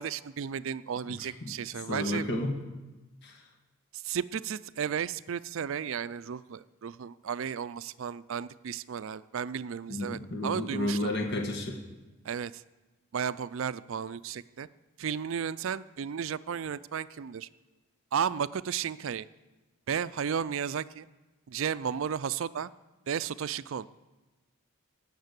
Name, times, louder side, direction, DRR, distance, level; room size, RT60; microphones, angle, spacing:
voice 1, 0.0-2.3 4.0-11.1 12.2-12.6 13.1-14.7 15.0-17.5 18.1-19.3 19.9-21.1 21.5-22.7 23.1-23.9, right 7 dB, 65° right, 16 dB, 0.4 m, -33 dB
voice 2, 1.2-1.5 1.9-2.6 3.2-3.4 9.9-11.8, left 1 dB, 50° left, 3 dB, 1.6 m, -32 dB
17.0 x 6.7 x 8.2 m, 1.1 s
head